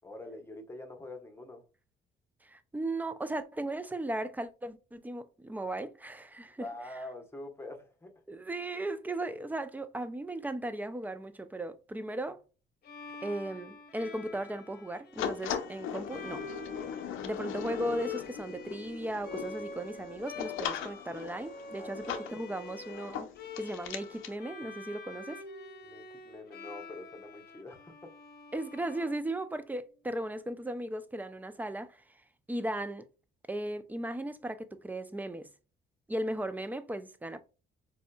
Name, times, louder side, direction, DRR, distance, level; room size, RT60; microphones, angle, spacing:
voice 1, 0.0-1.7 6.6-8.1 21.8-22.2 25.8-28.1, left 2 dB, 10° left, 0.9 m, -45 dB
voice 2, 2.4-6.7 8.3-12.4 13.2-16.5 17.2-23.3 23.6-25.4 28.5-32.0 32.5-33.1 33.5-35.5 36.1-37.4, right 1 dB, 10° right, 0.4 m, -36 dB
Bowed string instrument, 12.8-29.8, left 4 dB, 50° left, 0.8 m, -46 dB
sound 1, 15.2-24.4, left 8 dB, 85° left, 0.6 m, -39 dB
4.2 x 2.7 x 2.2 m
cardioid pair, 90°, 20 cm